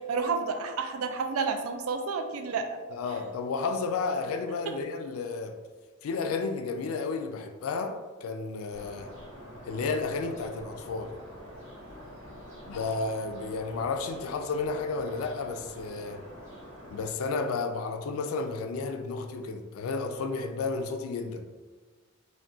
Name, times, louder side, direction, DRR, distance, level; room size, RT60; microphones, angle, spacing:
voice 1, 0.1-2.8 4.7-4.8, right 4 dB, 90° right, 0.4 m, -30 dB
voice 2, 2.9-5.6 6.0-9.1 9.6-11.2 12.6-16.2 16.9-21.5, left 4 dB, 85° left, 0.3 m, -32 dB
sound 1, 8.7-17.1, equal, 75° right, 1.2 m, -46 dB
2.3 x 2.2 x 3.7 m
head